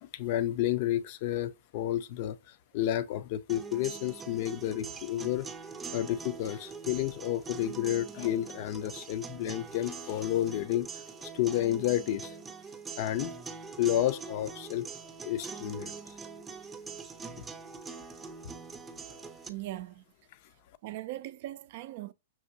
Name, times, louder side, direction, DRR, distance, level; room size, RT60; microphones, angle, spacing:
voice 1, 0.0-2.4 2.7-5.5 5.9-10.9 11.3-12.4 13.0-13.3 13.8-14.9 15.2-16.1 17.4-17.5 18.4-18.5, left 13 dB, 50° left, 0.5 m, -31 dB
sound 1, 3.5-19.5, right 5 dB, 15° right, 0.6 m, -43 dB
voice 2, 19.5-20.0 20.8-22.1, right 15 dB, 55° right, 0.4 m, -39 dB
6.0 x 2.7 x 2.6 m
hypercardioid pair, 125°, 0 cm